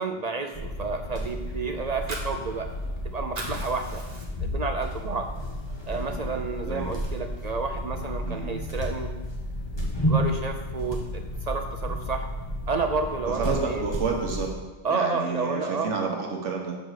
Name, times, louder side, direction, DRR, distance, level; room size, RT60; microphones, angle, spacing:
voice 1, 0.0-2.7 3.0-4.0 4.4-5.3 5.9-9.1 10.0-12.3 12.7-13.8 14.8-15.9, right 4 dB, 60° right, 5 dB, 0.4 m, -30 dB
sound 1, 0.5-14.5, equal, 20° left, 1.3 m, -32 dB
Fire, 1.8-3.0 3.2-4.6 5.0-5.1 5.5-6.5, right 2 dB, 35° right, 1.2 m, -38 dB
voice 2, 8.3-8.6 13.3-14.5 14.9-16.8, right 4 dB, 75° right, 1 dB, 1.4 m, -29 dB
6.9 x 5.0 x 6.4 m, 1.2 s
omnidirectional pair, 1.3 m